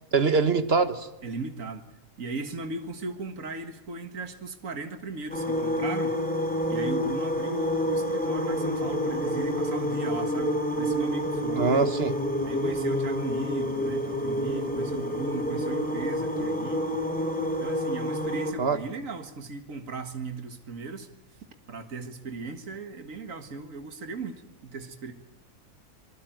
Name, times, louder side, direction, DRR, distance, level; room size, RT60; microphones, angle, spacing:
voice 1, 0.1-1.1 11.5-12.1 18.6-18.8, right 4 dB, 45° right, 10 dB, 1.5 m, -23 dB
voice 2, 1.2-1.8 2.2-6.2 6.7-11.9 12.4-17.0 17.6-21.1 21.7-25.1, right 3 dB, 65° right, 7 dB, 2.1 m, -37 dB
sound 1, 5.3-18.5, equal, 5° left, 3.1 m, -28 dB
26.0 x 19.5 x 9.2 m, 0.92 s
omnidirectional pair, 1.5 m